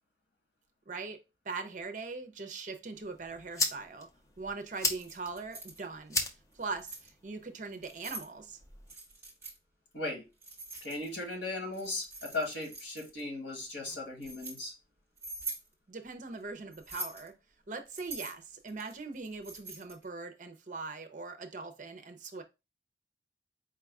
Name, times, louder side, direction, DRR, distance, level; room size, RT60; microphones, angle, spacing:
voice 1, 0.9-4.1 4.4-6.2 6.5-8.6 15.9-17.3 17.7-22.4, right 4 dB, 45° right, 0.6 m, -41 dB
sound 1, 2.9-8.9, left 2 dB, 20° left, 0.5 m, -38 dB
Keys jangling, 4.7-5.8 6.5-7.1 7.7-8.3 8.9-9.6 10.4-11.3 11.7-13.2 13.9-14.6 15.2-15.7 16.7-17.3 17.9-20.0, right 2 dB, 15° right, 1.2 m, -44 dB
voice 2, 9.9-10.2 10.8-14.7, left 2 dB, 85° left, 1.6 m, -37 dB
4.7 x 2.3 x 3.4 m
head